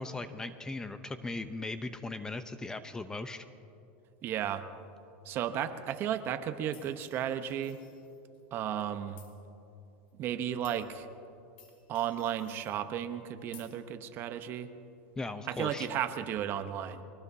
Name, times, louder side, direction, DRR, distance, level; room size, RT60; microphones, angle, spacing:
voice 1, 0.0-3.4 15.2-15.9, left 2 dB, 10° left, 10 dB, 0.7 m, -38 dB
voice 2, 4.2-4.7 5.2-7.8 8.5-9.2 10.2-11.1 11.9-14.7 15.5-17.0, right 10 dB, 40° right, 10 dB, 0.9 m, -34 dB
sound 1, 6.7-8.4 9.2-9.3 10.1-10.2 10.6-10.9 11.6-12.8 13.5-13.7, left 8 dB, 85° left, 3.2 m, -57 dB
24.5 x 19.5 x 2.8 m, 2.7 s
supercardioid pair, 130°, 6 cm